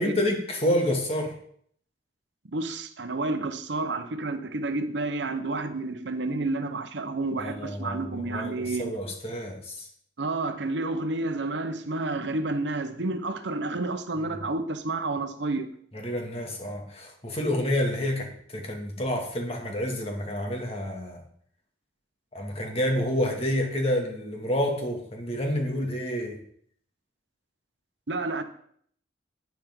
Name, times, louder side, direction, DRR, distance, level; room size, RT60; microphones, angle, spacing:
voice 1, 0.0-1.3 7.4-9.9 14.3-14.4 15.9-21.2 22.3-26.4, left 1 dB, 35° left, 2.2 m, -29 dB
voice 2, 2.5-9.0 10.2-15.7 28.1-28.4, right 2 dB, 65° right, 0.9 m, -30 dB
11.5 x 9.3 x 3.8 m
head